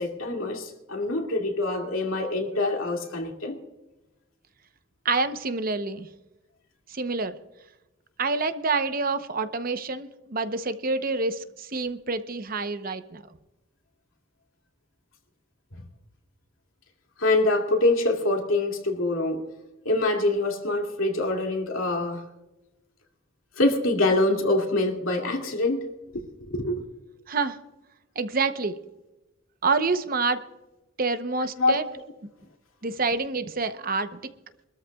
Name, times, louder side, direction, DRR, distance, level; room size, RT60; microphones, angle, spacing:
voice 1, 0.0-3.6 15.7-15.8 17.2-19.5 19.8-22.2 23.6-25.9 26.1-26.8 31.6-31.7, left 2 dB, 85° left, 2.5 m, -25 dB
voice 2, 5.0-6.1 6.9-7.4 8.2-13.2 27.3-27.6 28.2-28.8 29.6-30.4 31.0-31.8 32.8-34.2, right 4 dB, 45° right, 0.8 m, -27 dB
24.0 x 13.5 x 2.4 m
head